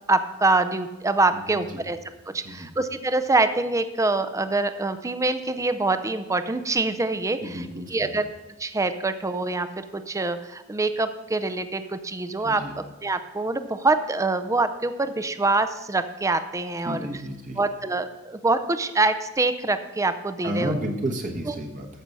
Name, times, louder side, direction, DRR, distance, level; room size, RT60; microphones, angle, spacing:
voice 1, 0.1-2.0 2.3-8.3 8.6-17.1 17.6-20.7 21.5-21.6, right 3 dB, 15° right, 11 dB, 0.5 m, -25 dB
voice 2, 7.4-8.2 12.4-12.7 16.8-17.6 20.4-21.9, right 1 dB, 40° right, 1 dB, 1.1 m, -31 dB
13.5 x 6.1 x 5.3 m, 1.0 s
head